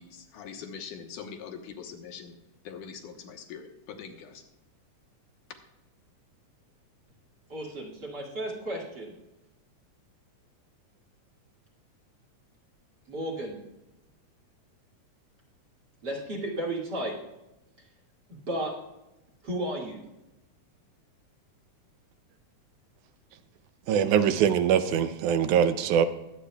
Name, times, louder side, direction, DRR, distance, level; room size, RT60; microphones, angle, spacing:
voice 1, 0.0-2.3 2.6-4.4, left 6 dB, 85° left, 2.7 m, -43 dB
voice 2, 7.5-9.1 13.1-13.6 16.0-17.1 17.8-17.9 18.3-18.7 19.4-20.0, right 1 dB, 40° right, 2.2 m, -33 dB
voice 3, 23.9-26.1, right 8 dB, 80° right, 2.1 m, -23 dB
21.5 x 8.6 x 2.3 m
omnidirectional pair, 3.5 m